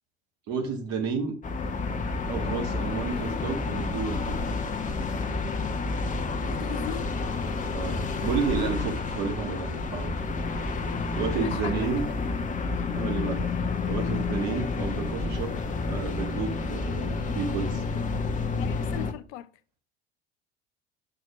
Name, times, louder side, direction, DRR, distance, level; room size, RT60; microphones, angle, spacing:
voice 1, 0.5-1.3 2.3-4.4 7.7-10.1 11.1-12.0 12.9-13.5 13.8-15.6 15.8-17.8, right 5 dB, 50° right, 1.7 m, -31 dB
sound 1, 1.4-19.1, left 3 dB, 25° left, 0.9 m, -30 dB
voice 2, 6.4-7.1 11.3-12.4 18.6-19.5, left 14 dB, 50° left, 0.5 m, -40 dB
6.3 x 5.5 x 4.8 m
figure-of-eight pair, 65°, 33 cm